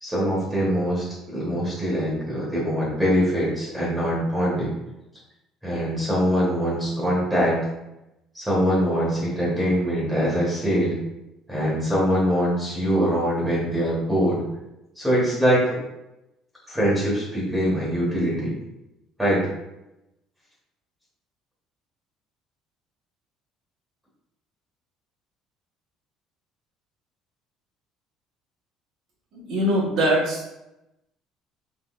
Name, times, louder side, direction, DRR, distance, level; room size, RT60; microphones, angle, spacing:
voice 1, 0.0-4.7 5.6-7.7 8.3-11.0 11.5-14.4 15.0-15.8 16.7-18.5 19.2-19.5, equal, 5° right, -6 dB, 1.0 m, -23 dB
voice 2, 29.3-30.5, equal, 60° right, -3 dB, 1.1 m, -22 dB
3.6 x 3.3 x 2.4 m, 0.91 s
cardioid pair, 165°, 0 cm